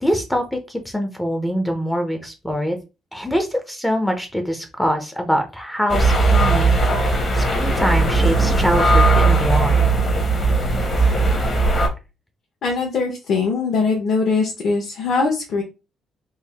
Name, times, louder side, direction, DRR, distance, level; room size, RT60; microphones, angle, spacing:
voice 1, 0.0-2.8 3.1-10.0, equal, 5° left, 5 dB, 0.5 m, -24 dB
sound 1, 5.9-11.9, right 3 dB, 30° left, 0.8 m, -17 dB
voice 2, 12.6-15.6, left 4 dB, 55° left, -1 dB, 0.9 m, -21 dB
3.4 x 2.5 x 3.3 m, 0.28 s
cardioid pair, 165°, 0 cm